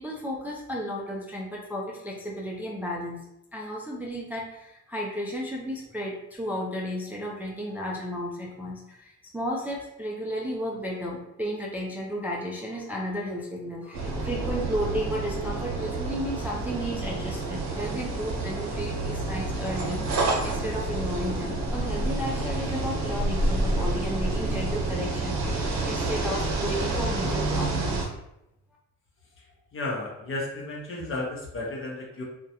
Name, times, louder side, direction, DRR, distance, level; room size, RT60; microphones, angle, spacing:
voice 1, 0.0-3.2 3.5-28.1, equal, 5° right, -4 dB, 0.3 m, -33 dB
Windy autumn - bicycle going down the curb, 13.9-28.0, right 2 dB, 65° right, 0.8 m, -29 dB
voice 2, 29.7-32.2, left 2 dB, 45° left, -2 dB, 0.8 m, -33 dB
2.3 x 2.1 x 2.8 m, 0.84 s
cardioid pair, 90°, 30 cm